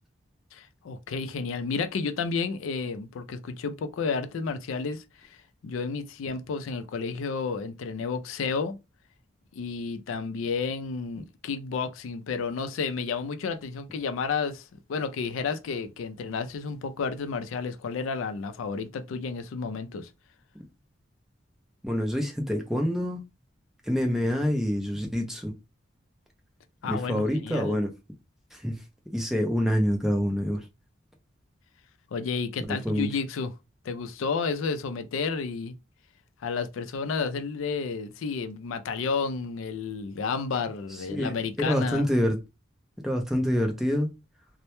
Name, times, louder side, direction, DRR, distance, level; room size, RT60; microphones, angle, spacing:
voice 1, 0.5-5.4 5.6-8.8 9.5-20.1 26.8-27.8 32.1-33.5 33.8-35.7 36.4-42.1, left 5 dB, 80° left, 0.4 m, -31 dB
voice 2, 21.8-23.2 23.8-25.5 26.8-27.9 28.5-28.8 29.1-30.7 32.7-33.1 40.9-42.4 43.0-44.1, equal, ahead, 0.4 m, -26 dB
2.1 x 2.0 x 2.9 m
head